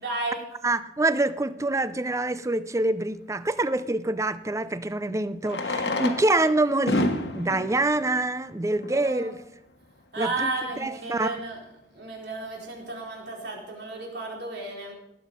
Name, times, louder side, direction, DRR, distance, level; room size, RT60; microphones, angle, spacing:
voice 1, 0.0-0.4 8.9-9.3 10.1-11.6 11.9-14.9, right 2 dB, 70° right, 4.3 m, -33 dB
voice 2, 0.6-7.1 7.3-9.4 10.2-10.5 10.8-11.4, right 2 dB, 15° right, 0.5 m, -26 dB
Fireworks, 1.9-2.0 4.2-4.3 5.4-9.1 9.9-10.0 10.2-10.3 10.5-10.6 11.1-11.3, left 2 dB, 70° left, 1.3 m, -30 dB
18.5 x 8.3 x 5.5 m
head